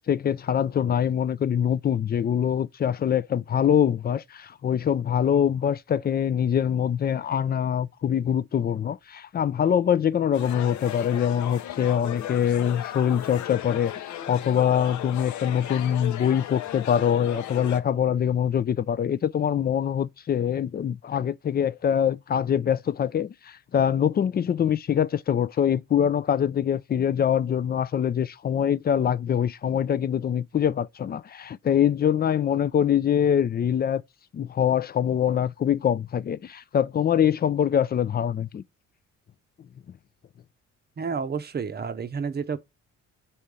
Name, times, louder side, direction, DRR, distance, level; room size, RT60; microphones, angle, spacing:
voice 1, 0.1-34.0 34.3-38.6, left 9 dB, 35° left, 0.4 m, -24 dB
sound 1, 10.3-17.8, left 12 dB, 70° left, 0.7 m, -36 dB
voice 2, 41.0-42.6, right 5 dB, 35° right, 0.7 m, -30 dB
5.3 x 4.4 x 4.8 m
cardioid pair, 90°, 30 cm